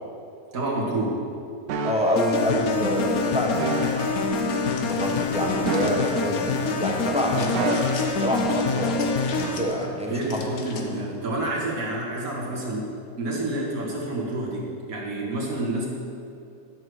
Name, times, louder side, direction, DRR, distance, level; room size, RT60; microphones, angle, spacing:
voice 1, 0.5-1.2 7.3-7.5 10.1-12.9 13.2-15.9, right 2 dB, 55° right, -3 dB, 2.1 m, -28 dB
sound 1, 1.7-2.3 3.6-4.2 5.6-6.5 7.5-8.3 9.4-9.7, right 5 dB, 85° right, 1.3 m, -31 dB
voice 2, 1.8-4.2 4.8-10.4, equal, 5° right, -1 dB, 0.5 m, -27 dB
sound 2, 2.2-9.8, left 4 dB, 65° left, 1.2 m, -26 dB
sound 3, 4.3-6.2 7.4-8.1 8.5-9.9 10.2-11.0, left 5 dB, 90° left, 1.5 m, -42 dB
11.5 x 4.8 x 6.2 m, 2.4 s
omnidirectional pair, 1.8 m